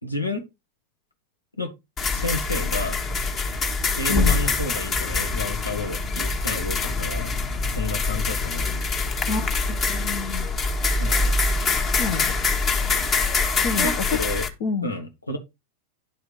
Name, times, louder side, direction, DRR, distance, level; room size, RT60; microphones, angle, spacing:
voice 1, 0.0-0.5 1.6-1.7 2.1-3.0 4.0-7.3 7.6-8.8 11.0-11.3 13.8-14.5 14.8-15.4, left 1 dB, 85° left, 2.0 m, -31 dB
sound 1, 2.0-14.5, left 3 dB, 25° left, 1.6 m, -24 dB
voice 2, 9.3-10.4 12.0-12.4 13.6-14.2 14.6-14.9, left 6 dB, 50° left, 1.4 m, -28 dB
11.0 x 4.9 x 5.0 m
figure-of-eight pair, 90°, 0 cm